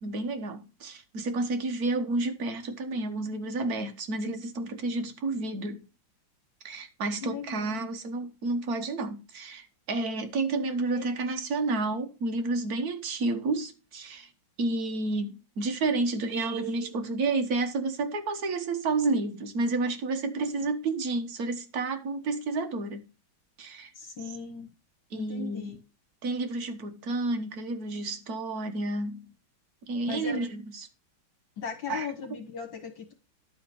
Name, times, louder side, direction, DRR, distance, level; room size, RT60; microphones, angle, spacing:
voice 1, 0.0-5.8 6.6-14.3 14.6-23.1 23.6-23.9 25.1-25.7 26.2-29.3 29.9-30.9 31.9-32.1, right 3 dB, 50° right, 1.7 m, -30 dB
voice 2, 7.2-7.8 10.8-11.0 23.9-24.7 25.1-25.8 30.1-30.4 31.6-33.1, left 6 dB, 70° left, 2.3 m, -38 dB
11.0 x 4.2 x 6.8 m
omnidirectional pair, 2.2 m